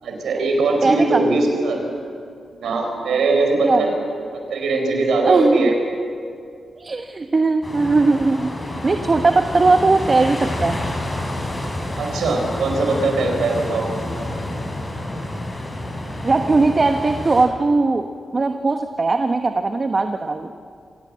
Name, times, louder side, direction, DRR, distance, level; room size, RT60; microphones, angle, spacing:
voice 1, 0.0-1.8 2.5-3.9 4.5-5.7 12.0-13.9, right 3 dB, 85° right, 2 dB, 4.7 m, -20 dB
voice 2, 0.8-1.2 3.6-3.8 5.2-5.7 6.8-10.8 16.2-20.5, right 3 dB, 45° right, 7 dB, 1.1 m, -19 dB
sound 1, 7.6-17.5, left 1 dB, 30° left, 5.9 m, -29 dB
24.5 x 17.5 x 7.6 m, 2.2 s
supercardioid pair, 50°, 0 cm